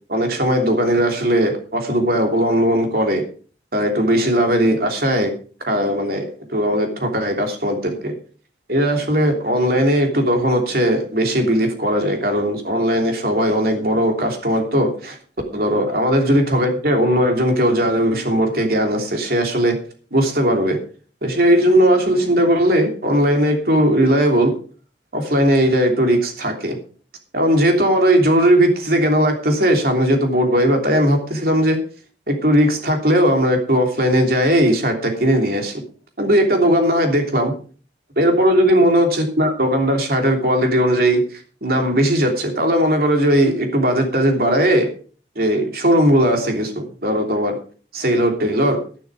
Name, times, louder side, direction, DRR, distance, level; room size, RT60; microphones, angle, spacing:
voice 1, 0.1-3.2 3.7-5.3 5.7-8.1 8.7-15.2 15.5-19.8 20.1-20.8 21.2-24.5 25.1-26.8 27.3-31.8 32.3-35.7 36.2-37.5 38.2-44.9 45.3-47.6 47.9-48.8, equal, 55° right, 4 dB, 3.1 m, -18 dB
11.5 x 11.0 x 5.0 m, 0.38 s
head